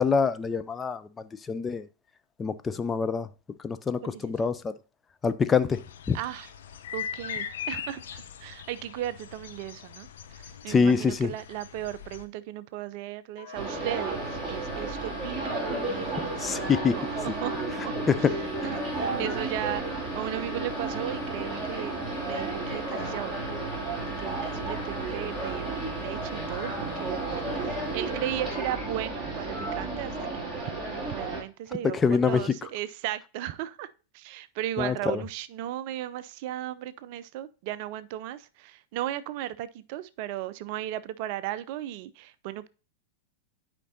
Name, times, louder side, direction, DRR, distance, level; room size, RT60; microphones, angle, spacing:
voice 1, 0.0-1.9 2.4-3.3 3.6-4.7 5.2-5.8 6.1-6.2 10.7-11.3 16.4-17.0 18.1-18.3 31.9-32.5 34.8-35.2, left 5 dB, 20° left, 0.4 m, -25 dB
voice 2, 4.0-4.3 6.1-6.5 6.9-15.4 15.9-16.5 16.9-22.0 22.3-23.3 24.0-30.7 31.1-42.7, right 13 dB, 45° right, 0.4 m, -36 dB
sound 1, 5.7-12.2, left 8 dB, 60° left, 0.7 m, -40 dB
Wind instrument woodwind instrument, 13.4-28.7, left 1 dB, 45° left, 2.6 m, -44 dB
sound 2, 13.5-31.4, right 2 dB, ahead, 2.6 m, -33 dB
11.5 x 5.1 x 2.7 m
figure-of-eight pair, 90°, 0 cm